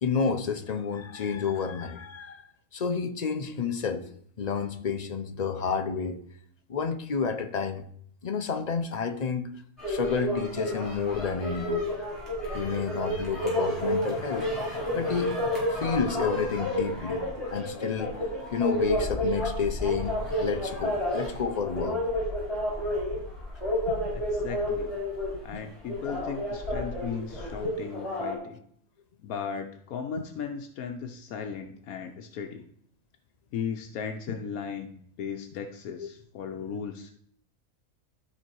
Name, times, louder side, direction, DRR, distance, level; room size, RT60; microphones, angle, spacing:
voice 1, 0.0-2.4 2.7-4.1 4.4-6.2 6.7-7.8 8.2-9.5 9.9-11.8 12.5-15.3 15.7-17.2 17.5-18.2 18.5-22.0 23.9-24.0 24.4-24.5 25.5-25.6, left 6 dB, 45° left, 8 dB, 0.5 m, -30 dB
sound 1, 9.8-28.3, left 1 dB, 20° left, 4.8 m, -30 dB
voice 2, 24.1-24.9 25.4-28.6 29.2-32.7 33.5-37.1, left 6 dB, 80° left, 4 dB, 1.2 m, -36 dB
12.5 x 4.5 x 4.6 m, 0.64 s
omnidirectional pair, 1.5 m